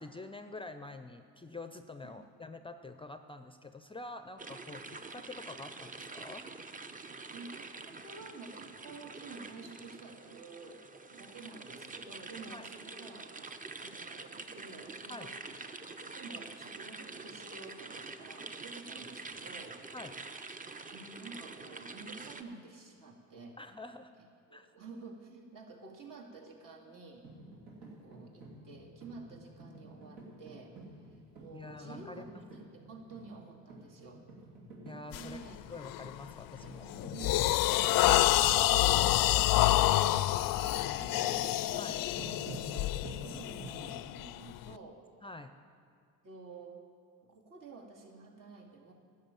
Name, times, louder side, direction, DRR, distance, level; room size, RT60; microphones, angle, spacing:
voice 1, 0.0-6.5 12.5-12.7 15.1-15.3 19.9-20.1 23.6-24.1 24.5-24.7 31.5-32.3 34.8-35.4 35.7-36.8 41.8-42.0 45.2-45.5, left 2 dB, 15° left, 9 dB, 0.5 m, -46 dB
sound 1, 4.4-22.4, right 3 dB, 20° right, 0.7 m, -46 dB
voice 2, 7.3-15.3 16.1-19.8 20.9-23.6 24.2-27.3 28.0-34.2 35.1-35.6 36.6-45.1 46.2-46.8 47.2-48.9, right 3 dB, 60° right, 0 dB, 2.3 m, -51 dB
sound 2, 27.2-43.7, right 2 dB, 80° right, 3.0 m, -49 dB
sound 3, 35.1-35.4 35.9-36.2 36.6-44.7, left 15 dB, 65° left, 0.5 m, -28 dB
12.5 x 6.6 x 8.9 m, 2.3 s
supercardioid pair, 80°, 37 cm